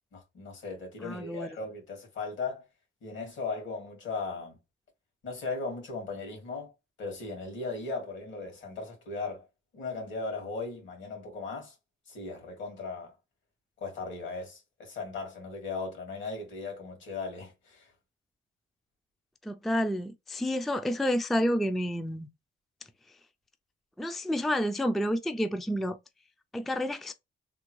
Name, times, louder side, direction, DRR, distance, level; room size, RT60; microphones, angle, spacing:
voice 1, 0.1-2.7 3.0-4.6 5.2-6.7 7.0-9.5 9.7-11.7 12.1-13.1 13.8-17.9, left 3 dB, 75° left, 2.0 m, -37 dB
voice 2, 1.0-1.5 19.4-22.3 24.0-26.0 26.5-27.1, equal, ahead, 0.3 m, -29 dB
3.5 x 2.1 x 3.0 m
cardioid pair, 90°, 20 cm